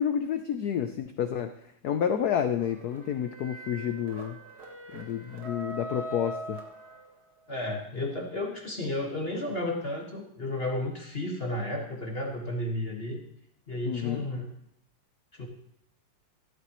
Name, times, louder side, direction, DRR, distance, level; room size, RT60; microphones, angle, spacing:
voice 1, 0.0-1.5 1.8-4.4 4.9-6.6 13.9-14.2, left 9 dB, 80° left, 8 dB, 0.8 m, -29 dB
sound 1, 2.6-7.4, right 2 dB, 45° right, 2.2 m, -42 dB
voice 2, 7.5-13.2 13.7-14.4 15.3-15.5, left 1 dB, 30° left, 0 dB, 1.6 m, -32 dB
15.5 x 13.0 x 3.1 m, 0.73 s
omnidirectional pair, 2.4 m